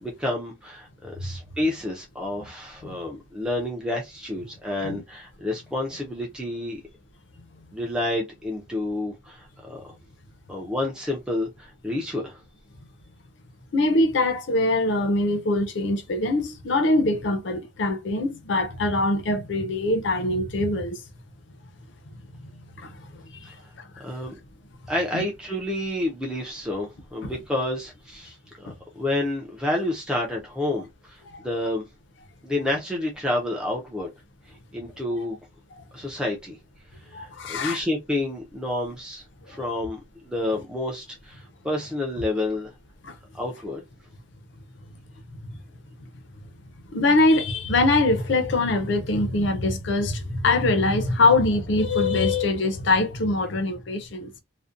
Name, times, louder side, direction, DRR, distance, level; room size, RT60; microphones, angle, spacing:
voice 1, 0.0-6.8 7.7-9.8 10.5-12.4 23.4-23.5 24.0-24.3 24.9-28.7 29.0-31.9 32.4-34.1 34.7-35.4 35.9-36.6 37.1-40.0 40.3-42.7 43.3-43.8, left 1 dB, 5° right, 0.4 m, -29 dB
voice 2, 13.7-21.0 22.8-23.2 25.1-25.2 28.7-28.8 31.3-31.4 35.8-35.9 37.1-37.8 39.5-39.6 43.0-43.2 46.9-54.3, left 2 dB, 65° left, 0.5 m, -23 dB
2.5 x 2.1 x 2.4 m
head